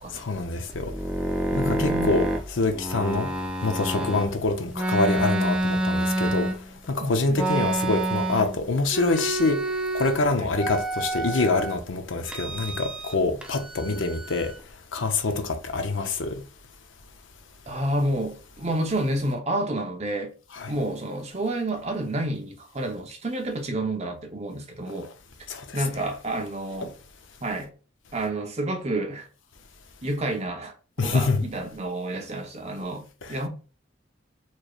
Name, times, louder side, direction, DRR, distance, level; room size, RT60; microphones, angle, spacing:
voice 1, 0.1-0.9 1.6-3.3 3.6-6.5 6.9-9.6 9.9-14.5 14.9-16.4 20.5-20.7 25.5-26.1 26.8-26.9 31.0-31.4 33.2-33.5, left 3 dB, 85° left, 0.7 m, -26 dB
sound 1, 0.7-4.3 4.7-6.9 7.3-8.6 8.9-10.2 10.6-11.7 12.3-13.2 13.4-14.6, right 1 dB, 5° right, 0.5 m, -28 dB
voice 2, 1.5-2.2 4.0-4.1 7.0-7.4 10.4-10.5 17.7-20.3 20.7-25.1 25.7-26.9 27.4-27.7 28.1-29.3 30.0-30.7 31.0-33.5, right 1 dB, 35° right, 0.8 m, -29 dB
4.4 x 3.1 x 2.4 m
head